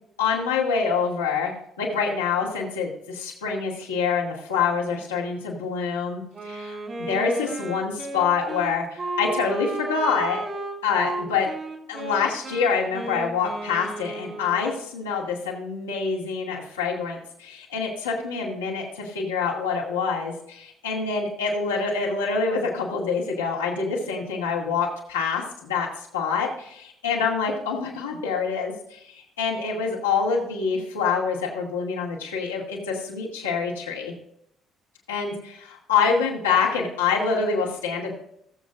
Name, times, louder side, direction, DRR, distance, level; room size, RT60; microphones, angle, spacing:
voice 1, 0.2-1.5 1.8-10.4 10.8-11.5 11.9-34.1 35.1-38.1, left 5 dB, 85° left, -3 dB, 2.2 m, -26 dB
Wind instrument woodwind instrument, 6.3-14.8, right 2 dB, 45° right, 2.5 m, -34 dB
19.0 x 7.6 x 2.5 m, 0.73 s
hypercardioid pair, 50°, 0 cm